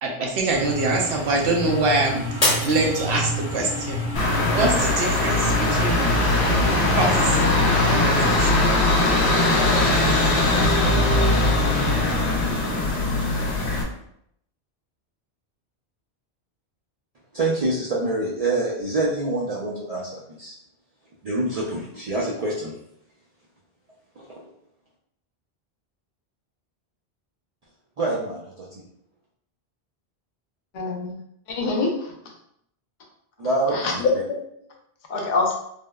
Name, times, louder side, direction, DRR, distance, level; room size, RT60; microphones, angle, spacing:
voice 1, 0.0-2.2 2.7-6.0 7.0-7.5 7.9-8.6, right 2 dB, 85° right, 0 dB, 0.9 m, -24 dB
sound 1, 0.5-8.4, equal, 15° right, 0.7 m, -29 dB
Shatter, 2.4-3.7 4.2-4.7 5.2-5.3, left 1 dB, 40° left, 1.0 m, -25 dB
sound 2, 4.2-13.8, left 2 dB, 85° left, 0.9 m, -20 dB
voice 2, 17.3-20.5 21.2-22.7 24.2-24.3 28.0-28.8 33.4-34.0, right 2 dB, 50° right, -6 dB, 0.5 m, -26 dB
voice 3, 30.7-31.1 31.5-32.1 33.7-34.3 35.1-35.5, left 3 dB, 55° left, 0 dB, 0.6 m, -24 dB
3.3 x 2.1 x 2.2 m, 0.73 s
omnidirectional pair, 1.1 m